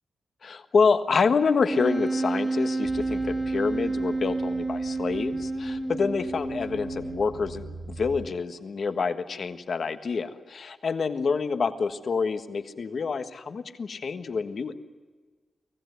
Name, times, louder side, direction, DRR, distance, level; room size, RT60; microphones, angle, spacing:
voice 1, 0.4-14.7, left 5 dB, 55° left, 9 dB, 1.5 m, -27 dB
Wind instrument woodwind instrument, 1.7-7.4, right 2 dB, 5° right, 2.3 m, -29 dB
sound 1, 2.8-8.3, right 3 dB, 55° right, 4.8 m, -44 dB
24.5 x 17.5 x 9.5 m, 1.4 s
wide cardioid pair, 140°, 0 cm